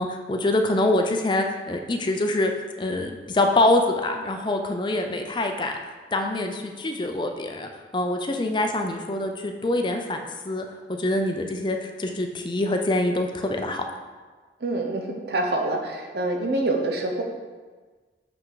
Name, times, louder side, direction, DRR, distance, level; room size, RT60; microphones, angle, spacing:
voice 1, 0.0-2.5 2.8-5.8 6.1-10.2 10.4-13.8, left 2 dB, 25° left, 4 dB, 0.5 m, -25 dB
voice 2, 14.6-17.2, right 2 dB, 65° right, 2 dB, 0.8 m, -26 dB
6.0 x 5.5 x 3.9 m, 1.4 s
head